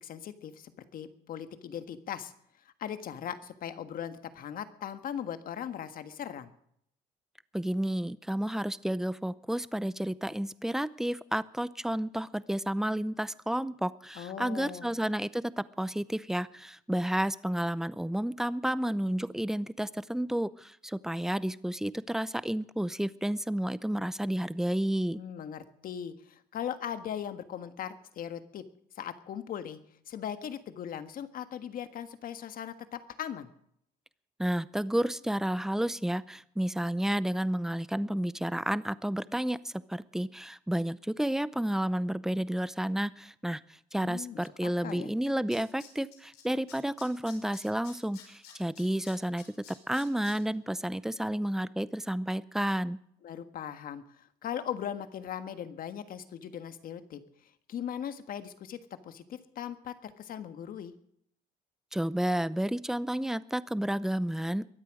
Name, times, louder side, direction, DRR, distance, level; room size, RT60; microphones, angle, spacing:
voice 1, 0.0-2.3 2.8-6.5 14.1-14.9 25.2-28.6 28.9-29.8 30.1-33.5 44.0-45.1 53.2-57.2 57.7-58.8 59.0-60.9, left 9 dB, 60° left, 10 dB, 1.5 m, -39 dB
voice 2, 7.5-25.2 34.4-43.6 43.9-53.0 61.9-64.7, right 1 dB, 5° right, 17 dB, 0.6 m, -31 dB
Tools, 44.9-45.0 45.2-46.4 46.7-50.3 50.7-50.8, left 9 dB, 80° left, 5.6 m, -51 dB
23.0 x 8.4 x 6.4 m, 0.68 s
cardioid pair, 110°, 17 cm